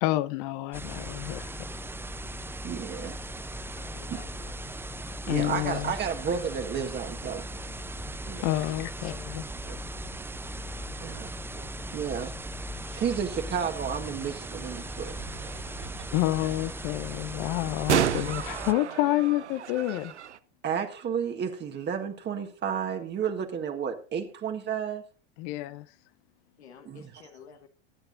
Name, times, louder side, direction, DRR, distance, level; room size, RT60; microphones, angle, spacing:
voice 1, 0.0-1.8 5.3-5.9 8.4-9.4 16.1-20.1 25.4-25.9, left 16 dB, 50° left, 0.8 m, -29 dB
sound 1, 0.7-18.7, right 1 dB, 5° right, 0.6 m, -38 dB
voice 2, 2.6-3.2 4.1-4.2 5.3-7.8 8.2-8.5 9.6-9.8 11.0-12.3 12.9-15.1 20.6-25.0 26.8-27.2, right 7 dB, 30° right, 1.6 m, -32 dB
voice 3, 3.8-4.7 26.6-27.7, left 6 dB, 75° left, 1.5 m, -51 dB
sound 2, 14.2-20.4, right 9 dB, 85° right, 0.7 m, -33 dB
22.0 x 8.8 x 2.6 m
hypercardioid pair, 90°, 33 cm